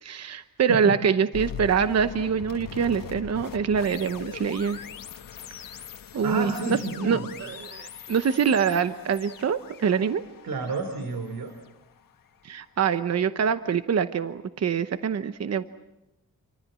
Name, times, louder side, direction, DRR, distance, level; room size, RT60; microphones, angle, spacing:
voice 1, 0.0-4.8 6.1-6.8 7.0-10.2 12.4-15.6, right 7 dB, 45° right, 10 dB, 0.9 m, -25 dB
voice 2, 0.7-1.0 6.2-7.3 10.4-11.5, right 3 dB, 75° right, 7 dB, 3.4 m, -30 dB
sound 1, 1.3-12.4, left 8 dB, 65° left, 1.4 m, -41 dB
29.0 x 25.0 x 7.6 m, 0.92 s
wide cardioid pair, 150°, 35 cm